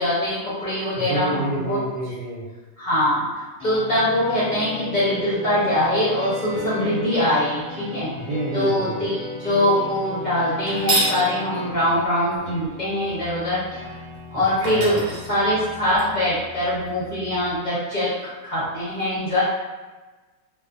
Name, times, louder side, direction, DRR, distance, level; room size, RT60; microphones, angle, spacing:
voice 1, 0.0-1.8 2.8-3.3 3.6-8.1 8.5-13.6 14.3-15.0 15.3-18.1 18.4-19.4, left 1 dB, 40° left, -10 dB, 0.6 m, -23 dB
voice 2, 1.0-2.4 8.2-9.0 14.3-15.0, right 1 dB, 90° right, -4 dB, 1.2 m, -28 dB
sound 1, 3.6-17.6, left 2 dB, 10° left, 1.0 m, -37 dB
sound 2, 10.7-11.2 14.1-14.2 14.6-16.0, right 2 dB, 55° right, 0.8 m, -26 dB
2.5 x 2.4 x 2.4 m, 1.2 s
omnidirectional pair, 1.7 m